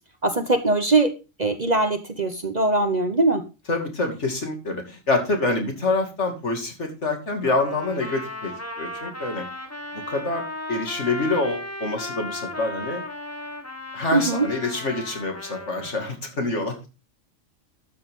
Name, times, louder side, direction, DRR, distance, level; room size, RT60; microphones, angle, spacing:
voice 1, 0.2-1.1 1.4-3.4 14.1-14.5, right 2 dB, 35° right, 8 dB, 1.0 m, -21 dB
voice 2, 3.7-8.5 8.8-9.5 9.9-10.4 10.7-13.0 13.9-16.9, left 2 dB, 60° left, 3 dB, 2.8 m, -26 dB
Trumpet, 7.4-16.0, left 2 dB, 10° left, 1.4 m, -35 dB
12.5 x 7.9 x 3.7 m, 0.30 s
omnidirectional pair, 1.4 m